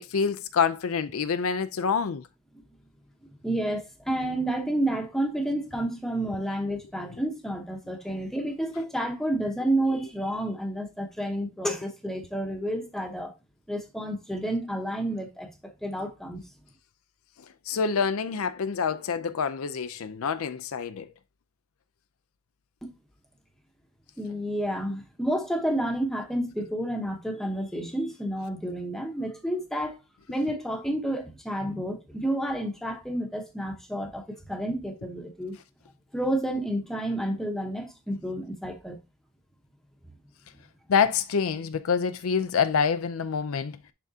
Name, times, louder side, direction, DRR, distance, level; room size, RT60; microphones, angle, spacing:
voice 1, 0.0-2.2 17.7-21.1 40.9-43.8, left 6 dB, 70° left, 0.5 m, -26 dB
voice 2, 3.4-13.3 13.7-15.5 15.8-16.4 22.8-22.9 24.2-30.0 30.3-35.6 36.1-39.0, right 1 dB, ahead, 1.0 m, -30 dB
11.0 x 3.6 x 2.7 m
head